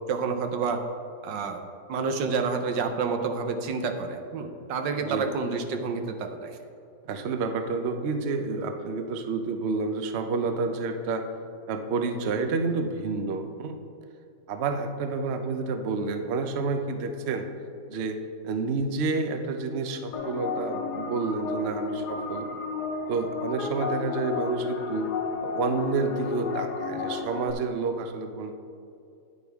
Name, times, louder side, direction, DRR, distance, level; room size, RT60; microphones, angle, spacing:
voice 1, 0.1-0.8 1.2-1.6 1.9-6.6, right 5 dB, 90° right, 6 dB, 1.5 m, -29 dB
voice 2, 7.0-11.2 11.7-13.7 14.5-17.5 17.9-18.2 18.4-22.5 23.1-25.1 25.4-28.5, right 4 dB, 55° right, 6 dB, 0.7 m, -29 dB
sound 1, 20.1-27.5, left 4 dB, 70° left, 1.3 m, -32 dB
9.9 x 9.3 x 3.5 m, 2.6 s
omnidirectional pair, 1.9 m